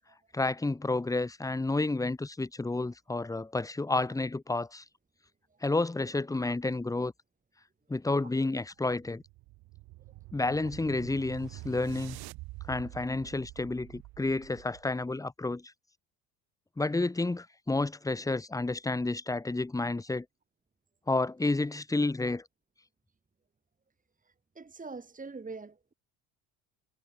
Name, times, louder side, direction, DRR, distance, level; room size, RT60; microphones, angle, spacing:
voice 1, 0.3-4.8 5.6-7.1 7.9-9.2 10.3-12.2 12.7-15.7 16.8-20.3 21.1-22.4, left 2 dB, 10° left, 0.8 m, -30 dB
sound 1, 9.0-15.0, right 21 dB, 75° right, 3.4 m, -47 dB
voice 2, 24.6-25.9, right 4 dB, 20° right, 2.9 m, -43 dB
supercardioid pair, 75°, 40 cm